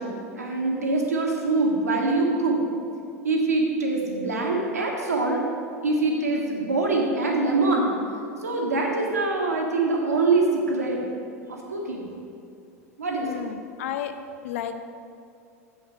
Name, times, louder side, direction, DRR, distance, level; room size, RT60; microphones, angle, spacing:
voice 1, 0.0-2.6 3.2-5.4 5.8-7.9 8.4-11.0 11.5-12.1 13.0-13.3, right 3 dB, 75° right, -1 dB, 1.4 m, -24 dB
voice 2, 13.2-14.1 14.4-14.8, left 10 dB, 60° left, 8 dB, 0.6 m, -32 dB
7.8 x 5.2 x 6.4 m, 2.4 s
figure-of-eight pair, 80°, 8 cm